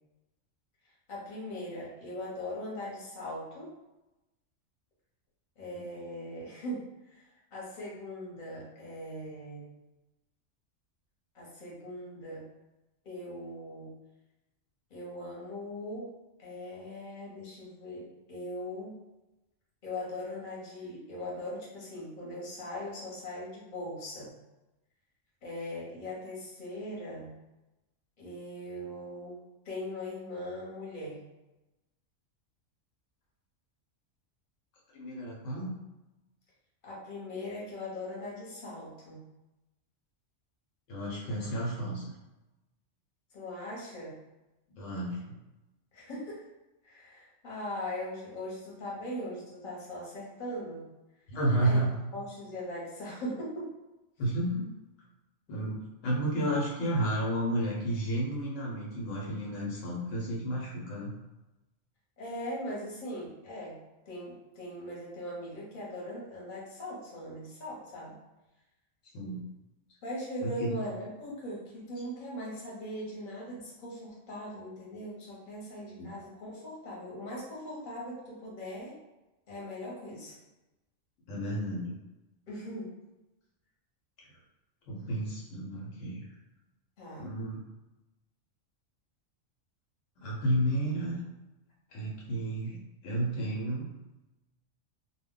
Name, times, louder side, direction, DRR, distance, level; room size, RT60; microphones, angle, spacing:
voice 1, 1.1-3.7 5.6-7.2 7.5-9.6 11.3-12.4 13.0-13.9 14.9-16.0 16.4-18.9 19.8-24.3 25.4-27.3 28.2-31.2 36.8-39.2 43.3-44.1 45.9-46.4 46.8-50.8 51.6-51.8 52.1-53.7 62.2-63.8 64.1-68.1 70.0-78.9 79.5-80.4 82.5-82.9 87.0-87.3, left 1 dB, 45° left, -4 dB, 0.9 m, -40 dB
voice 2, 34.9-35.8 40.9-42.0 44.8-45.4 51.3-52.0 54.2-54.7 55.5-61.1 69.1-69.4 70.4-70.8 76.0-76.1 81.3-81.9 84.9-86.2 87.2-87.6 90.2-91.2 91.9-92.8 93.0-93.9, right 1 dB, 75° left, -4 dB, 1.1 m, -31 dB
2.2 x 2.2 x 3.6 m, 1.0 s
omnidirectional pair, 1.3 m